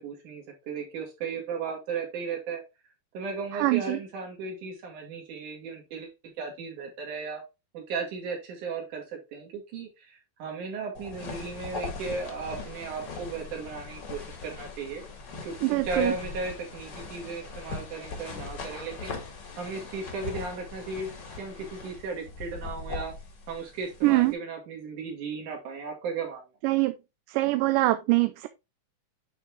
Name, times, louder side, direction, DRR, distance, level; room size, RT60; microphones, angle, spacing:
voice 1, 0.0-2.6 3.1-7.4 7.7-15.0 15.4-19.2 19.6-21.1 21.4-23.2 23.5-26.4, right 4 dB, 65° right, 3.6 m, -35 dB
voice 2, 3.6-4.0 15.6-16.1 24.0-24.3 26.6-26.9 27.3-28.5, right 19 dB, 85° right, 2.2 m, -23 dB
sound 1, 10.9-24.3, left 4 dB, 45° left, 1.7 m, -40 dB
8.9 x 4.0 x 3.6 m
omnidirectional pair, 3.8 m